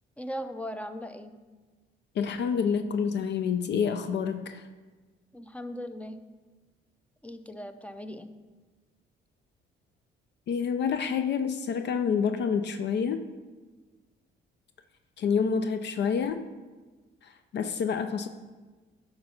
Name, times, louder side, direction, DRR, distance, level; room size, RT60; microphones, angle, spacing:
voice 1, 0.2-1.3 5.3-6.2 7.2-8.3, equal, 5° left, 10 dB, 0.5 m, -38 dB
voice 2, 2.1-4.7 10.5-13.2 15.2-16.4 17.2-18.3, left 6 dB, 60° left, 9 dB, 0.5 m, -28 dB
10.0 x 3.9 x 5.6 m, 1.3 s
cardioid pair, 90°, 20 cm